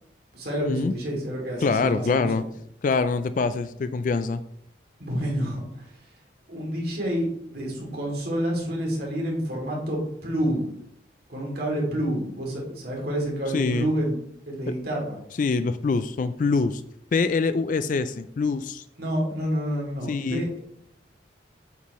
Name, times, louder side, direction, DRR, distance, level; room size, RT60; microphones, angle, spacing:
voice 1, 0.3-2.3 5.0-5.9 6.5-10.7 11.3-14.1 14.5-15.2 19.0-20.6, equal, 55° right, -2 dB, 2.7 m, -28 dB
voice 2, 1.6-2.4 2.8-4.4 13.5-13.9 14.7-14.8 15.4-16.8 17.1-18.8 20.1-20.4, left 4 dB, 45° left, 12 dB, 0.3 m, -24 dB
8.1 x 7.3 x 3.1 m, 0.72 s
head